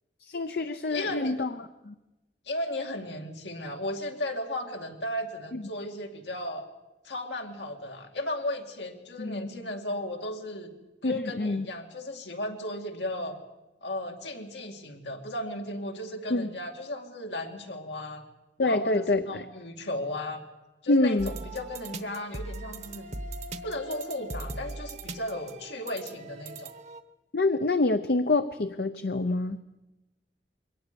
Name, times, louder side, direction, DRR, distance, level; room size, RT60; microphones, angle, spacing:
voice 1, 0.2-1.9 5.5-5.6 9.2-9.5 11.0-11.7 16.3-16.5 18.6-19.4 20.9-21.3 27.3-29.6, left 2 dB, 60° left, 9 dB, 0.7 m, -26 dB
voice 2, 0.9-1.4 2.5-6.7 7.0-10.7 11.0-13.4 13.8-18.3 18.6-20.4 20.8-23.1 23.6-26.7, left 1 dB, 85° left, 3 dB, 2.3 m, -35 dB
sound 1, 21.2-27.0, right 2 dB, 40° right, 1.0 m, -40 dB
22.5 x 18.0 x 6.9 m, 0.99 s
head